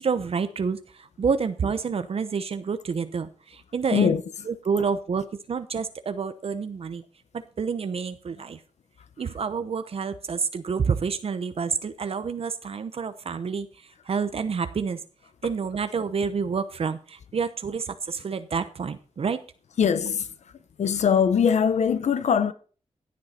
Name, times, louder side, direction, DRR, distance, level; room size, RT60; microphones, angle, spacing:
voice 1, 0.0-4.2 4.5-7.0 7.3-8.6 9.2-13.7 14.1-15.0 15.4-19.4, right 5 dB, 60° right, 0.9 m, -28 dB
voice 2, 3.9-4.2 19.8-20.3 20.8-22.5, left 7 dB, 85° left, 1.1 m, -21 dB
16.5 x 8.6 x 4.3 m
wide cardioid pair, 115°, 11 cm